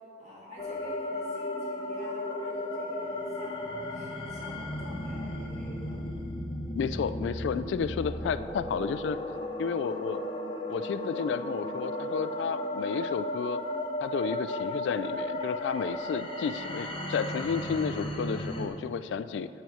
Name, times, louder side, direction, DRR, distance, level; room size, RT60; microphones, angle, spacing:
voice 1, 0.2-6.0, left 1 dB, 40° right, -6 dB, 2.2 m, -48 dB
sound 1, 0.6-18.7, left 1 dB, 30° left, 0.7 m, -35 dB
voice 2, 6.7-9.2 9.6-10.2 10.7-13.6 14.0-19.5, left 6 dB, 90° left, 13 dB, 0.3 m, -32 dB
6.6 x 6.1 x 7.1 m, 2.6 s
head